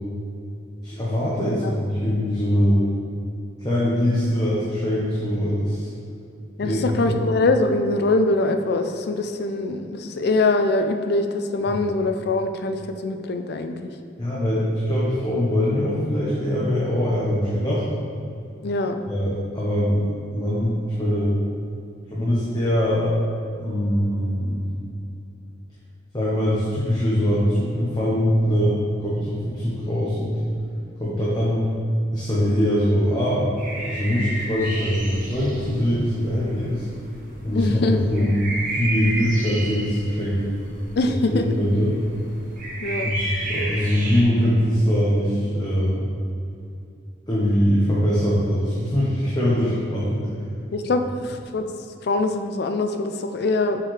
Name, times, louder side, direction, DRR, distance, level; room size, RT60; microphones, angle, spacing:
voice 1, 0.8-2.8 3.6-5.9 6.6-7.2 11.7-11.8 14.2-17.8 19.1-20.1 20.3-21.3 22.1-23.1 23.6-24.6 26.1-30.3 31.0-31.7 32.1-33.5 33.8-36.9 37.4-38.4 38.7-40.4 41.0-42.0 43.0-46.0 47.3-50.2, equal, 20° left, -8 dB, 1.0 m, -22 dB
voice 2, 6.6-13.9 18.6-19.0 37.5-38.3 41.0-41.4 42.8-43.1 50.7-51.6 52.0-53.8, left 2 dB, 55° left, 7 dB, 0.4 m, -23 dB
sound 1, 33.6-44.2, right 1 dB, 45° right, 1.1 m, -32 dB
7.5 x 4.7 x 3.2 m, 2.5 s
head